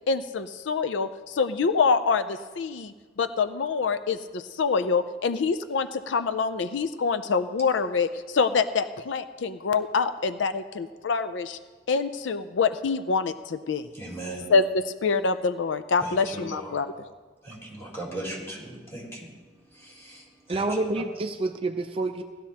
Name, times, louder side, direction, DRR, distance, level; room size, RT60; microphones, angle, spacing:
voice 1, 0.1-11.6 11.9-13.9 14.5-14.6 15.0-16.9, left 5 dB, 85° left, 11 dB, 0.5 m, -26 dB
voice 2, 13.9-14.5 16.0-16.8 17.4-19.3 19.6-20.7 20.9-21.0, right 1 dB, 15° left, -4 dB, 3.8 m, -38 dB
voice 3, 20.5-22.2, right 2 dB, 30° right, 6 dB, 0.5 m, -28 dB
17.5 x 12.5 x 2.8 m, 1.4 s
head